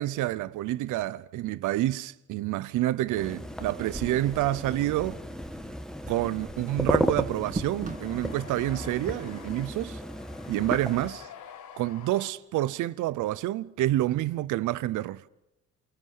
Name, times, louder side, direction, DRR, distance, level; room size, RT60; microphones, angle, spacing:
voice 1, 0.0-5.2 6.1-10.0 10.5-11.3 11.8-15.2, right 15 dB, 90° right, 0.7 m, -28 dB
sound 1, 3.1-11.1, equal, ahead, 1.2 m, -34 dB
sound 2, 3.6-8.7, right 3 dB, 25° right, 2.1 m, -41 dB
sound 3, 7.2-12.3, left 8 dB, 75° left, 1.6 m, -48 dB
28.0 x 18.0 x 5.5 m
cardioid pair, 90°, 30 cm